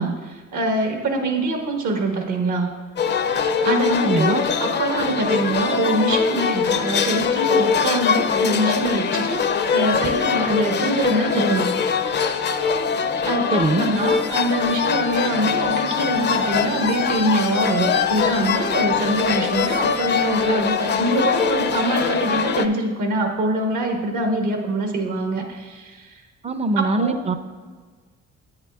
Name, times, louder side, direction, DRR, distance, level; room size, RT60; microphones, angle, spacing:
voice 1, 0.0-2.7 3.6-9.4 9.7-11.7 13.2-26.2 26.8-27.2, right 2 dB, 75° right, 2 dB, 1.5 m, -24 dB
sound 1, 3.0-22.7, left 6 dB, 35° left, 0.4 m, -22 dB
voice 2, 4.0-4.4 13.5-13.9 26.4-27.3, right 2 dB, 20° right, 10 dB, 0.5 m, -22 dB
9.6 x 8.4 x 2.4 m, 1.5 s
cardioid pair, 90°, 30 cm